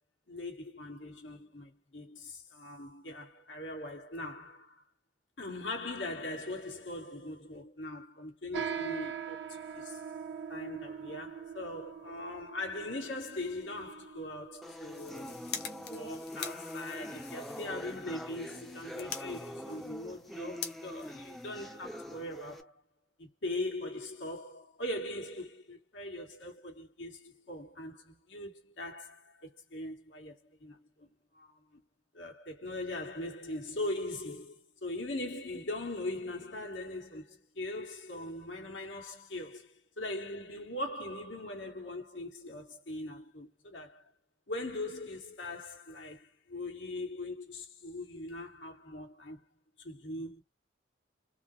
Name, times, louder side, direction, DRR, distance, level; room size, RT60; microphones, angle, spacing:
voice 1, 0.3-4.8 5.4-10.0 10.5-15.4 15.9-22.8 23.2-31.8 32.1-44.1 44.5-49.4 49.8-50.4, left 1 dB, 85° left, 1.5 m, -41 dB
sound 1, 8.5-16.3, right 7 dB, 70° right, 0.5 m, -42 dB
sound 2, 14.6-22.6, equal, ahead, 0.4 m, -44 dB
sound 3, 14.7-22.0, left 7 dB, 60° left, 0.8 m, -46 dB
3.7 x 2.0 x 2.6 m
head